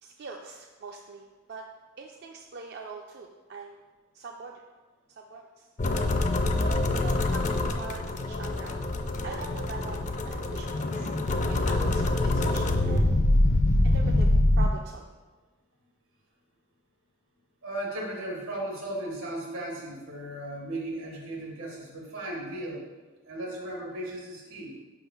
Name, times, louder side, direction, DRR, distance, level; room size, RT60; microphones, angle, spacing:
voice 1, 0.0-1.6 2.0-3.8 4.1-4.6 5.1-5.7 6.6-8.8 9.2-11.1 11.5-13.1 13.8-14.3 14.6-15.0 22.5-22.6, right 4 dB, 55° right, 1 dB, 0.4 m, -42 dB
sound 1, 5.8-14.7, left 2 dB, 35° left, 0.4 m, -25 dB
voice 2, 17.6-22.8 23.3-24.7, right 1 dB, 90° right, -2 dB, 1.6 m, -36 dB
5.4 x 3.6 x 5.8 m, 1.3 s
head